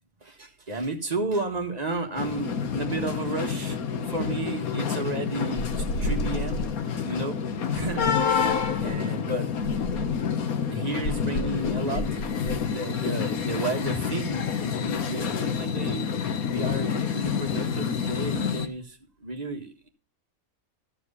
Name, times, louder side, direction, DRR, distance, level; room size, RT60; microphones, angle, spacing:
voice 1, 0.2-3.8 4.1-6.7 7.1-7.4 7.7-8.1 8.4-8.6 8.8-9.5 10.7-16.0 16.5-19.9, right 2 dB, 30° right, 3 dB, 1.7 m, -32 dB
sound 1, 2.2-18.7, left 6 dB, 85° left, 1.5 m, -28 dB
sound 2, 5.6-6.8 7.7-9.0 9.6-10.3 11.0-12.7, equal, 60° left, 1.3 m, -33 dB
13.5 x 4.9 x 6.8 m, 0.36 s
omnidirectional pair, 1.5 m